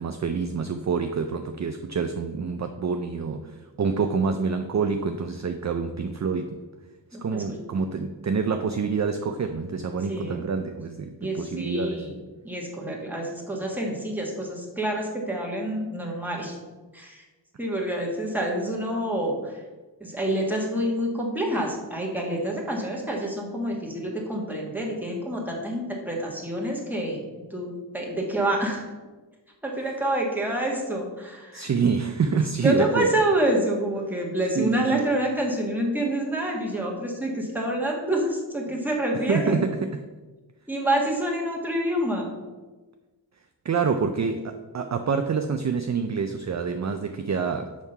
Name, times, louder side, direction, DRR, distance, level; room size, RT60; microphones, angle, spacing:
voice 1, 0.0-6.6 7.2-12.0 31.5-33.1 34.6-35.1 39.3-40.0 43.6-47.8, right 5 dB, 40° right, 7 dB, 0.4 m, -27 dB
voice 2, 7.1-7.4 10.1-10.4 11.2-12.1 12.4-16.6 16.9-17.2 17.6-19.6 20.0-27.2 27.5-28.9 29.6-31.7 32.6-39.6 40.7-42.3, right 1 dB, 5° right, -2 dB, 1.5 m, -27 dB
6.3 x 3.6 x 5.4 m, 1.2 s
wide cardioid pair, 50°, 46 cm